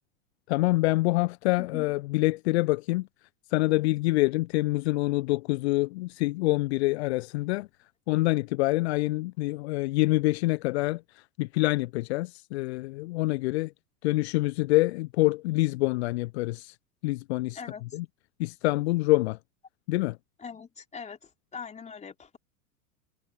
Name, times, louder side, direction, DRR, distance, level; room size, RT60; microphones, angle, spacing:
voice 1, 0.5-3.1 3.5-7.7 8.1-13.7 14.0-16.8 17.0-17.6 17.9-18.0 18.4-19.4 19.9-20.2, left 20 dB, 45° left, 1.1 m, -26 dB
voice 2, 17.6-18.0 20.4-22.4, left 6 dB, 15° left, 3.7 m, -42 dB
figure-of-eight pair, 90°, 44 cm